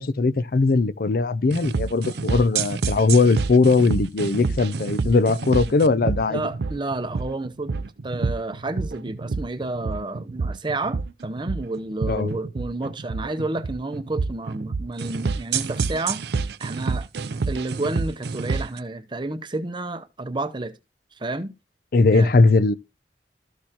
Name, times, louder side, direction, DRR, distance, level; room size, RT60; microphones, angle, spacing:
voice 1, 0.0-6.4 12.1-12.3 21.9-22.7, left 3 dB, 55° left, 0.5 m, -19 dB
sound 1, 1.5-18.8, right 4 dB, 65° right, 0.5 m, -28 dB
voice 2, 6.3-17.1 17.5-20.8 21.2-21.5 22.1-22.3, right 2 dB, 25° right, 0.7 m, -30 dB
13.5 x 6.5 x 2.9 m
head